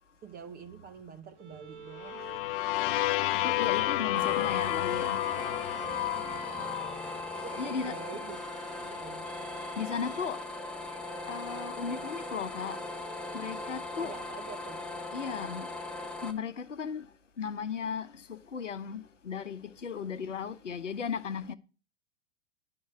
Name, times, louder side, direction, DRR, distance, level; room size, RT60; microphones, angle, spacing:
voice 1, 0.2-2.5 2.8-3.0 6.2-8.4 8.8-9.3 14.0-14.9, right 6 dB, 25° right, 1.0 m, -47 dB
Bowed string instrument, 1.4-13.9, right 6 dB, 70° right, 1.3 m, -51 dB
sound 1, 2.0-7.8, left 16 dB, 50° left, 0.5 m, -31 dB
voice 2, 3.3-5.3 7.6-7.9 9.8-10.4 11.3-12.9 13.3-14.1 15.1-15.7 16.0-17.1 17.4-21.5, left 6 dB, 90° left, 0.9 m, -36 dB
sound 2, 4.1-16.3, left 2 dB, 5° left, 1.2 m, -39 dB
11.5 x 3.9 x 7.8 m
hypercardioid pair, 100°, 36 cm